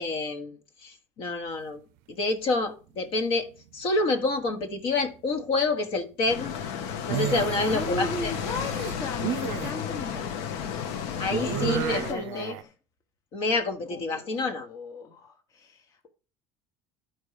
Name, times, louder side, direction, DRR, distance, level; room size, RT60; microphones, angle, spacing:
voice 1, 0.0-1.8 2.1-6.5 7.1-8.3 11.2-12.5 13.3-14.7, left 3 dB, 50° left, 1.3 m, -28 dB
sound 1, 3.2-4.0 4.3-4.8 7.0-9.7 11.3-12.6, right 14 dB, 85° right, 0.4 m, -33 dB
sound 2, 6.3-12.1, left 7 dB, 75° left, 1.0 m, -33 dB
voice 2, 7.7-10.5 11.0-12.7 13.9-16.1, left 3 dB, 30° left, 1.0 m, -37 dB
11.5 x 4.5 x 4.9 m
cardioid pair, 145°, 11 cm